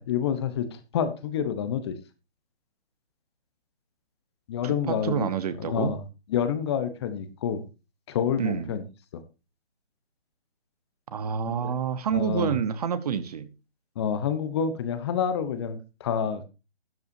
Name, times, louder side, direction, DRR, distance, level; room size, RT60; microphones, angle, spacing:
voice 1, 0.0-2.0 4.5-5.3 5.6-6.0 6.3-7.6 8.1-8.8 9.1-9.2 11.5-11.7 12.1-12.6 14.0-16.5, left 8 dB, 25° left, 11 dB, 1.1 m, -28 dB
voice 2, 4.6-5.9 8.4-8.7 11.1-13.5, right 7 dB, 40° right, 13 dB, 1.1 m, -28 dB
12.5 x 10.5 x 2.7 m, 0.29 s
hypercardioid pair, 150°, 31 cm